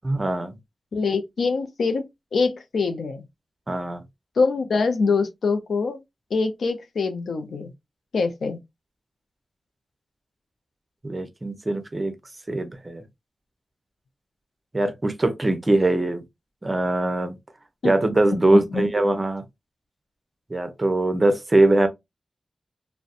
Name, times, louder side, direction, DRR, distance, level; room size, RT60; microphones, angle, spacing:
voice 1, 0.0-0.6 3.7-4.0 11.0-12.1 12.5-13.0 14.7-16.2 16.6-17.4 17.8-19.4 20.5-21.9, right 2 dB, 35° right, 0.6 m, -22 dB
voice 2, 0.9-2.1 2.3-3.2 4.4-6.0 6.3-7.7 8.1-8.6 17.8-17.9 18.5-18.8, left 4 dB, 90° left, 0.4 m, -24 dB
2.6 x 2.1 x 2.3 m
cardioid pair, 50°, 0 cm